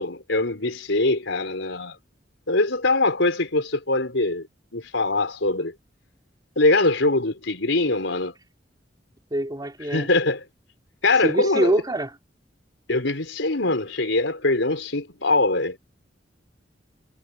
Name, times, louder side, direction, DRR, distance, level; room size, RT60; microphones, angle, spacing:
voice 1, 0.0-2.0 2.5-4.5 4.7-5.7 6.6-8.3 9.9-10.4 11.0-11.8 12.9-15.8, left 2 dB, 90° left, 4.1 m, -22 dB
voice 2, 9.3-10.1 11.2-12.1, right 1 dB, 20° right, 3.8 m, -24 dB
head